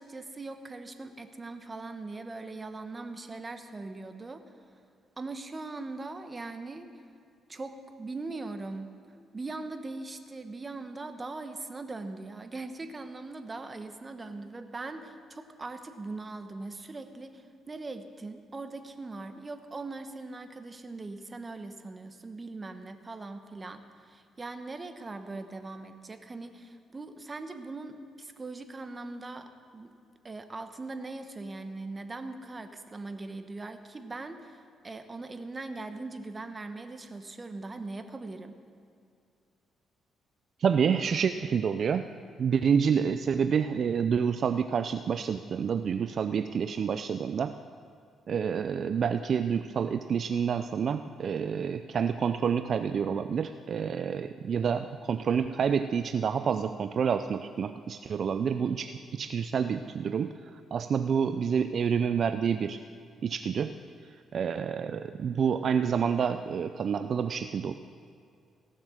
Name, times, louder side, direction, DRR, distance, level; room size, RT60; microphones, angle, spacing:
voice 1, 0.0-4.4 5.2-6.9 7.5-8.9 9.3-29.9 30.2-38.6, right 3 dB, 25° right, 8 dB, 1.0 m, -40 dB
voice 2, 40.6-42.0 42.4-47.5 48.3-62.8 63.2-63.7 64.0-67.7, right 7 dB, 55° right, 10 dB, 0.4 m, -28 dB
16.0 x 7.3 x 6.5 m, 2.4 s
cardioid pair, 90°, 0 cm